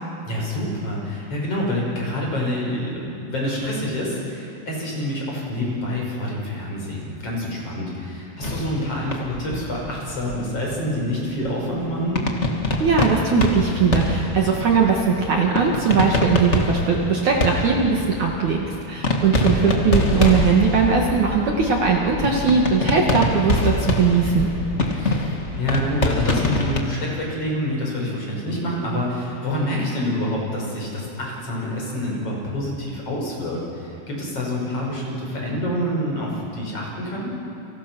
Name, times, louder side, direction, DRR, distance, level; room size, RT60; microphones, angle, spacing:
voice 1, 0.3-12.2 19.6-19.9 24.9-37.4, left 1 dB, 35° left, -2 dB, 6.4 m, -27 dB
sound 1, 8.4-26.8, left 2 dB, 85° left, 0.6 m, -25 dB
voice 2, 12.8-24.5, right 5 dB, 55° right, -1 dB, 2.7 m, -20 dB
29.5 x 25.5 x 6.2 m, 2.7 s
omnidirectional pair, 4.8 m